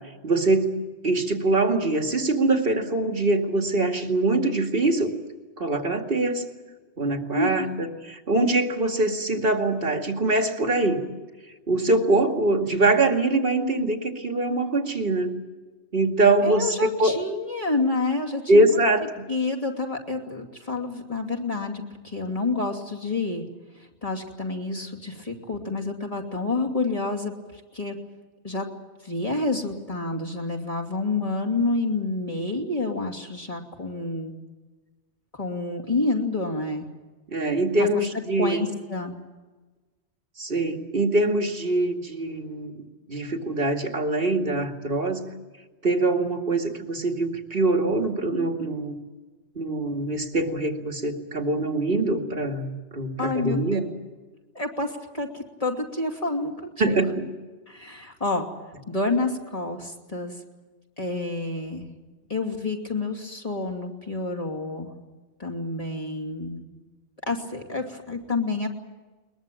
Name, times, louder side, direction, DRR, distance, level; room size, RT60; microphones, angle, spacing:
voice 1, 0.2-0.7 1.0-5.1 5.6-6.5 7.0-11.1 11.7-15.3 15.9-17.2 18.5-19.3 37.3-38.6 40.4-42.8 43.1-45.2 45.8-49.0 49.6-53.8 56.8-57.2, right 2 dB, 50° right, 5 dB, 2.5 m, -23 dB
voice 2, 7.3-7.7 16.4-18.8 19.3-23.4 24.0-28.0 28.4-28.7 29.0-34.3 35.3-36.9 37.8-37.9 38.4-39.1 53.2-53.8 54.5-57.0 57.7-58.5 58.9-60.4 61.0-61.9 62.3-64.9 65.4-66.6 67.2-68.7, left 3 dB, 30° left, 1 dB, 2.9 m, -28 dB
21.5 x 21.5 x 9.1 m, 1.3 s
omnidirectional pair, 1.2 m